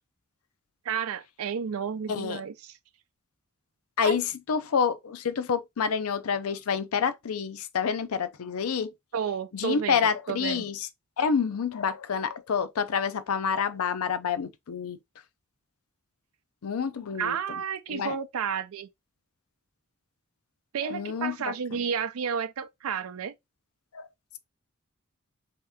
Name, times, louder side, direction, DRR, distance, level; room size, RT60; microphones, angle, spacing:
voice 1, 0.8-2.8 4.0-4.2 9.1-10.0 10.3-10.7 17.2-18.9 20.7-23.3, right 7 dB, 80° right, 0.4 m, -31 dB
voice 2, 2.1-2.4 4.0-8.9 9.5-10.9 11.2-15.0 16.6-17.4 17.9-18.1 20.8-21.8 23.9-24.1, left 6 dB, 85° left, 0.5 m, -28 dB
3.2 x 2.9 x 3.4 m
head